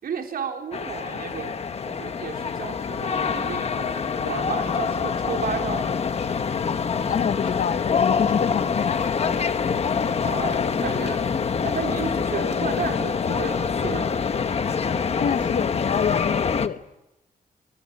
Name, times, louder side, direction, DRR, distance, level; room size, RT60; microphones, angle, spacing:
voice 1, 0.0-6.0 10.2-14.3, right 6 dB, 90° right, 4.2 m, -33 dB
sound 1, 0.7-16.7, left 6 dB, 45° left, 1.2 m, -25 dB
voice 2, 7.1-9.2 15.2-16.8, left 7 dB, 65° left, 1.1 m, -27 dB
27.0 x 24.5 x 8.5 m
wide cardioid pair, 180°, 15 cm